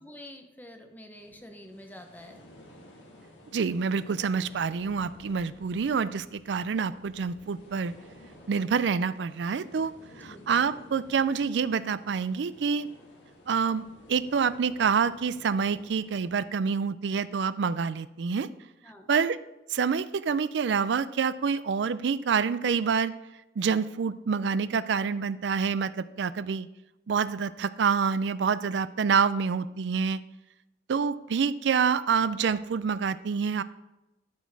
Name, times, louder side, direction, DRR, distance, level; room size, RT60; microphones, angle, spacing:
voice 1, 0.0-2.4 10.1-10.4 18.8-19.1, left 1 dB, 10° left, 4 dB, 0.6 m, -47 dB
sound 1, 1.1-16.3, left 1 dB, 85° left, 1.9 m, -53 dB
voice 2, 3.5-7.9 8.5-9.9 10.2-12.9 13.5-13.8 14.1-18.5 19.1-19.4 19.7-23.1 23.6-26.7 27.1-30.2 30.9-33.6, right 6 dB, 70° right, 15 dB, 0.4 m, -27 dB
12.0 x 4.3 x 4.6 m, 0.96 s
head